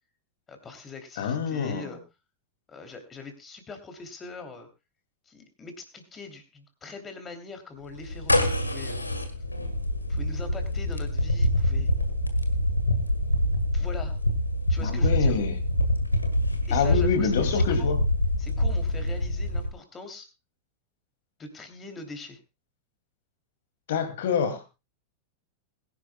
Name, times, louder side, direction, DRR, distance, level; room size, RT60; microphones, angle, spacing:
voice 1, 0.5-2.0 2.7-4.7 5.3-9.0 10.1-11.9 13.7-14.2 14.7-15.4 16.6-17.9 18.4-20.3 21.4-22.4, left 3 dB, 20° left, 7 dB, 2.9 m, -42 dB
voice 2, 1.2-2.0 14.8-15.5 16.7-18.0 23.9-24.6, left 6 dB, 55° left, 8 dB, 2.4 m, -26 dB
sound 1, 8.0-19.7, left 1 dB, 85° left, 1.7 m, -25 dB
21.5 x 11.0 x 2.3 m, 0.26 s
figure-of-eight pair, 90°, 0 cm